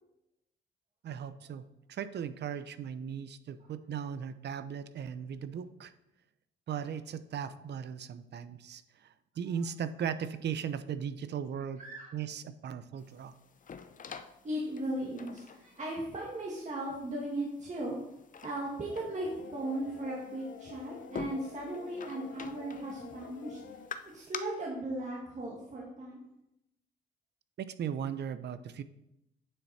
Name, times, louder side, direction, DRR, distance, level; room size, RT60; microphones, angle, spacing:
voice 1, 1.0-1.6 1.9-5.9 6.7-11.8 12.1-13.3 27.6-28.8, right 8 dB, 60° right, 13 dB, 0.7 m, -37 dB
voice 2, 11.8-12.1 14.4-18.0 18.4-23.6 24.1-26.3, right 1 dB, 35° right, -4 dB, 2.1 m, -37 dB
sound 1, 13.0-24.4, left 6 dB, 40° left, 0.7 m, -48 dB
sound 2, 18.9-23.9, left 8 dB, 70° left, 0.8 m, -49 dB
8.9 x 7.1 x 4.3 m, 0.86 s
cardioid pair, 90°, 20 cm